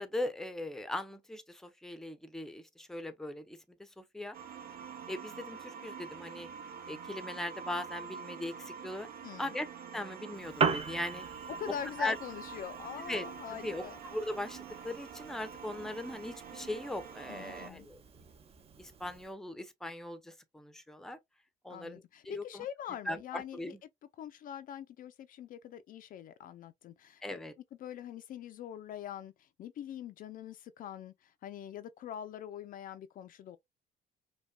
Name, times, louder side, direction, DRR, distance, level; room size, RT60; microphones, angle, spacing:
voice 1, 0.0-4.4 5.1-6.5 6.9-9.1 9.4-9.7 9.9-11.2 12.0-12.2 13.1-18.0 18.8-21.2 21.6-22.7 23.1-23.8 27.2-27.5, left 1 dB, 5° left, 0.6 m, -39 dB
sound 1, 4.3-17.7, right 6 dB, 65° right, 1.0 m, -46 dB
voice 2, 9.2-9.5 11.5-14.0 17.3-17.9 21.7-23.8 24.2-27.4 27.8-33.6, left 10 dB, 55° left, 0.4 m, -44 dB
Piano, 10.3-19.3, right 5 dB, 35° right, 0.7 m, -40 dB
5.1 x 2.2 x 2.2 m
cardioid pair, 110°, 17 cm